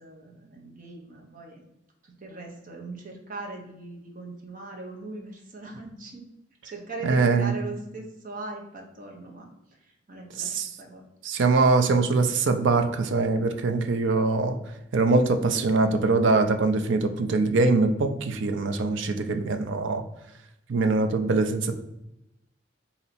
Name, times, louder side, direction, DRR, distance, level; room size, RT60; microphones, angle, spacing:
voice 1, 0.0-1.6 2.0-6.2 6.6-9.5 9.8-10.5 10.8-11.1, right 3 dB, 45° right, 1 dB, 0.8 m, -40 dB
voice 2, 7.0-7.5 10.4-10.7 11.2-14.6 14.9-20.0 20.7-21.7, right 3 dB, 70° right, 7 dB, 0.5 m, -23 dB
4.0 x 2.8 x 4.2 m, 0.89 s
head